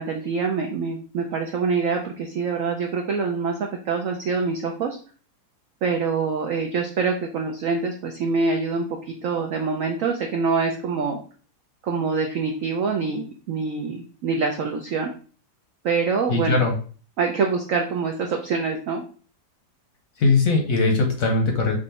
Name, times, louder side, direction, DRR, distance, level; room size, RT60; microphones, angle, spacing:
voice 1, 0.0-5.0 5.8-11.2 11.8-15.1 15.8-16.6 17.2-19.0, right 4 dB, 85° right, 2 dB, 0.7 m, -25 dB
voice 2, 16.3-16.8 20.2-21.8, left 3 dB, 60° left, 2 dB, 1.0 m, -20 dB
4.8 x 2.6 x 4.2 m, 0.40 s
omnidirectional pair, 2.1 m